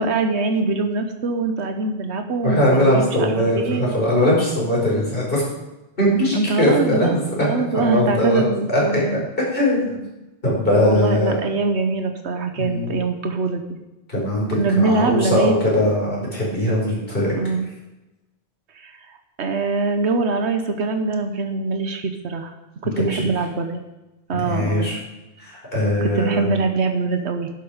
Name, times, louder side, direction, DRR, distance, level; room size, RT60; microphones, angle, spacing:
voice 1, 0.0-3.9 6.1-9.2 10.7-13.6 14.6-15.6 17.4-17.7 18.7-19.1 19.4-22.5 22.8-23.8 24.3-24.9 26.0-27.5, right 3 dB, 90° right, 6 dB, 1.3 m, -23 dB
voice 2, 2.4-5.4 6.0-7.3 7.7-8.4 8.7-8.8 9.4-10.0 10.4-11.4 12.6-12.9 14.1-17.3 23.0-23.1 24.3-25.0 25.4-26.5, left 1 dB, 55° left, -4 dB, 5.2 m, -20 dB
12.0 x 11.0 x 5.0 m, 1.0 s
omnidirectional pair, 1.1 m